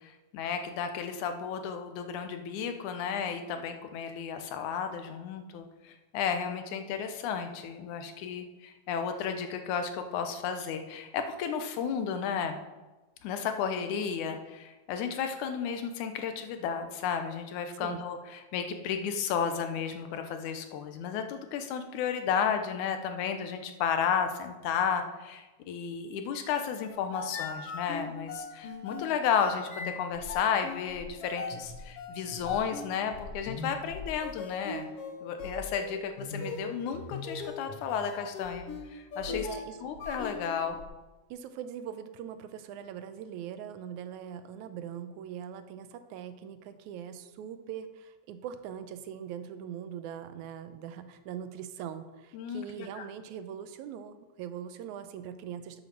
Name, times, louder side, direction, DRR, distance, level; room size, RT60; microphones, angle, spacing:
voice 1, 0.3-12.6 13.2-34.9 35.2-39.5 39.8-40.8 52.3-53.1, left 7 dB, 85° left, 7 dB, 2.3 m, -33 dB
sound 1, 26.9-40.8, left 4 dB, 60° left, 1.8 m, -40 dB
voice 2, 39.3-39.8 41.3-55.8, right 9 dB, 85° right, 10 dB, 2.1 m, -41 dB
8.0 x 7.7 x 6.1 m, 1.1 s
omnidirectional pair, 3.4 m